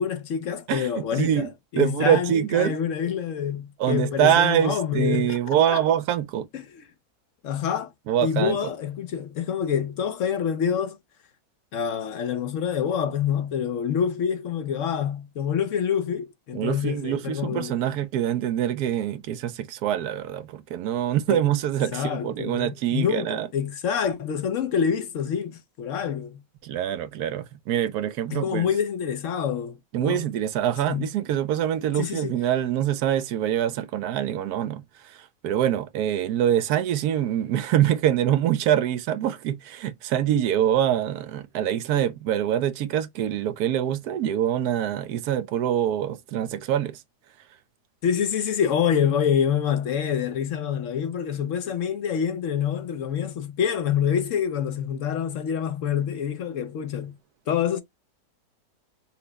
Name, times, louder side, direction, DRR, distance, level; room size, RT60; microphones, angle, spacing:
voice 1, 0.0-5.4 5.7-5.8 6.5-6.8 7.4-7.9 8.2-11.0 11.7-17.7 21.3-21.4 21.9-26.4 28.3-30.3 30.9-31.1 32.0-32.3 48.0-57.2 57.5-57.8, left 8 dB, 65° left, 0.8 m, -26 dB
voice 2, 0.7-1.5 1.8-2.8 3.8-6.5 8.1-8.7 16.5-23.5 26.6-28.7 29.9-47.0, right 10 dB, 80° right, 1.1 m, -25 dB
5.8 x 2.1 x 3.9 m
omnidirectional pair, 1.7 m